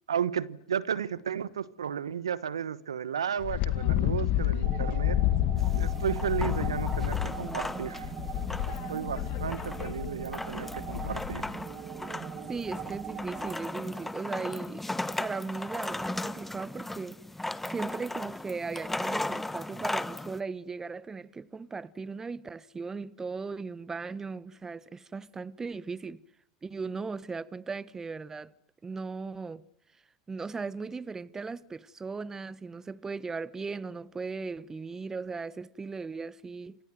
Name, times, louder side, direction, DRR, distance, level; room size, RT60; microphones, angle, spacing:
voice 1, 0.1-5.2 5.7-8.1 8.9-11.5, right 8 dB, 85° right, 1.3 m, -33 dB
Wind, 3.4-11.5, left 13 dB, 55° left, 2.2 m, -30 dB
sound 1, 4.6-13.6, right 10 dB, 40° right, 2.2 m, -42 dB
sound 2, 5.6-20.4, left 1 dB, 5° left, 1.4 m, -37 dB
voice 2, 12.5-14.9 15.2-17.2 17.7-26.2 26.6-28.5 28.8-29.6 30.3-36.8, right 4 dB, 20° right, 1.3 m, -37 dB
29.0 x 26.0 x 7.9 m
hypercardioid pair, 85°, 3 cm